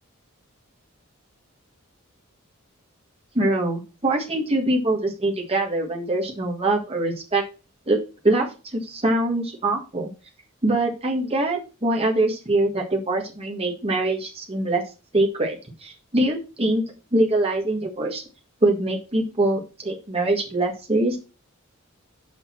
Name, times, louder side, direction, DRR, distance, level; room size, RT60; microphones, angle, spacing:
voice 1, 3.3-7.4 7.9-8.0 8.2-8.5 8.7-10.1 10.6-14.8 15.1-16.8 17.1-18.2 18.6-21.2, right 2 dB, 30° right, 0 dB, 1.7 m, -23 dB
6.3 x 5.3 x 6.0 m, 0.31 s
head